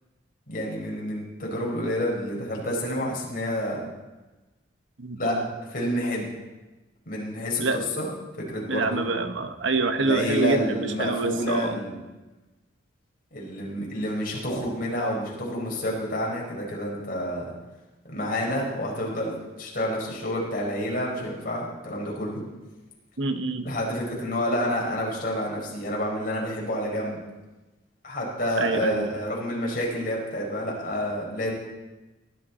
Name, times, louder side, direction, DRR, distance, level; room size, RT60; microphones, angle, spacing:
voice 1, 0.5-3.8 5.2-5.4 5.7-6.2 7.1-7.6 7.9-8.1 8.4-9.2 10.0-12.0 13.3-17.4 18.1-22.4 23.6-27.2 28.0-31.5, equal, 50° left, -3 dB, 4.7 m, -29 dB
voice 2, 5.0-5.4 7.6-7.8 8.7-11.8 23.2-23.7 28.6-29.1, right 3 dB, 75° right, 8 dB, 1.0 m, -26 dB
19.5 x 12.0 x 4.2 m, 1.1 s
head